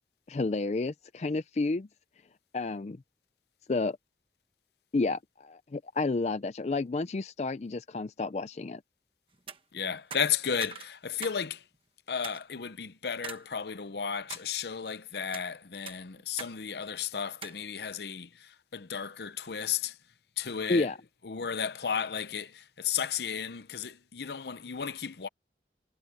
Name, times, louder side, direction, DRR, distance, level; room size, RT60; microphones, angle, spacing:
voice 1, 0.3-1.9 2.5-3.0 3.7-4.0 4.9-8.8 20.7-21.0, left 3 dB, 40° left, 0.4 m, -30 dB
sound 1, 9.3-9.6 10.1-11.4 11.7-11.8 12.2-12.4 13.2-13.4 13.9-14.5 15.1-15.5 15.9-16.6 16.8-16.9 17.4-17.6, right 6 dB, 30° right, 1.4 m, -43 dB
voice 2, 9.7-11.6 12.1-19.9 20.4-20.9 21.2-25.3, left 7 dB, 70° left, 0.7 m, -34 dB
head